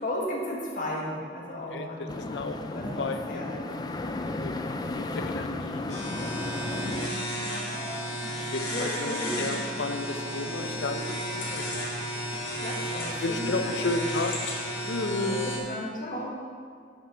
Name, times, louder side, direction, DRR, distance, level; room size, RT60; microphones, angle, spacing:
voice 1, 0.0-3.8 5.0-5.5 6.7-7.6 8.3-9.5 12.2-14.1 15.1-16.4, left 1 dB, 45° left, -3 dB, 1.6 m, -36 dB
voice 2, 1.7-2.6 3.0-3.7 4.0-6.5 7.9-12.4 13.2-14.3 14.8-15.5, left 3 dB, 70° left, 7 dB, 0.6 m, -34 dB
sound 1, 2.1-7.1, left 2 dB, 20° left, 0.4 m, -34 dB
sound 2, 5.9-15.6, equal, 90° left, 1.8 m, -33 dB
8.8 x 5.7 x 5.0 m, 2.2 s
head